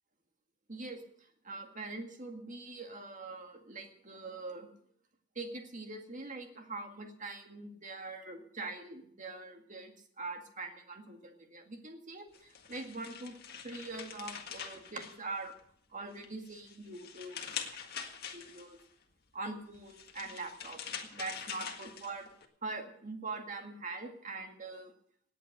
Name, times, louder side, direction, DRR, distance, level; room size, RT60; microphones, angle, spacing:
voice 1, 0.7-4.7 5.4-13.4 13.6-15.5 15.9-17.4 18.3-18.8 19.3-20.8 21.1-22.3 22.6-24.9, right 3 dB, 40° right, 4 dB, 2.0 m, -43 dB
sound 1, 12.3-15.7 16.1-18.8 19.7-22.5, left 7 dB, 55° left, 1.8 m, -44 dB
18.0 x 8.6 x 6.6 m, 0.66 s
head